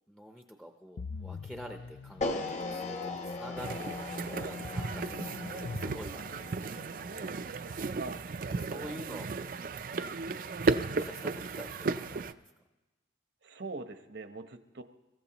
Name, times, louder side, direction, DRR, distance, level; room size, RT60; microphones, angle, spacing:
voice 1, 0.1-7.4 8.3-9.5 10.2-12.4, equal, ahead, 3 dB, 0.7 m, -48 dB
sound 1, 1.0-6.9, left 4 dB, 60° left, 0.4 m, -44 dB
Freak Snare, 2.2-8.4, left 3 dB, 40° left, 1.1 m, -40 dB
sound 2, 3.6-12.3, right 4 dB, 45° right, 0.5 m, -35 dB
voice 2, 8.5-9.0 13.4-14.8, right 3 dB, 65° right, 8 dB, 0.9 m, -42 dB
24.0 x 14.5 x 3.0 m, 1.0 s
head